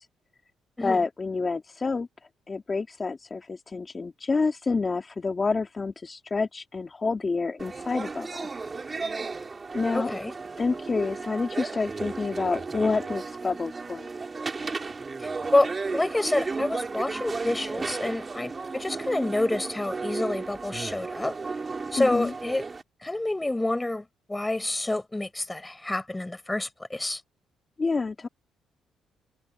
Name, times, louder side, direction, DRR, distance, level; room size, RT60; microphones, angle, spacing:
voice 1, 0.8-2.1 2.5-8.5 9.7-10.1 10.6-14.1 22.0-22.3 27.8-28.3, left 4 dB, 30° left, 2.4 m, -28 dB
sound 1, 7.6-22.8, right 4 dB, 30° right, 4.8 m, -34 dB
voice 2, 9.9-10.3 15.2-21.3 21.9-22.6 23.0-27.2, left 2 dB, 15° left, 5.4 m, -28 dB
cardioid pair, 90°, 0 cm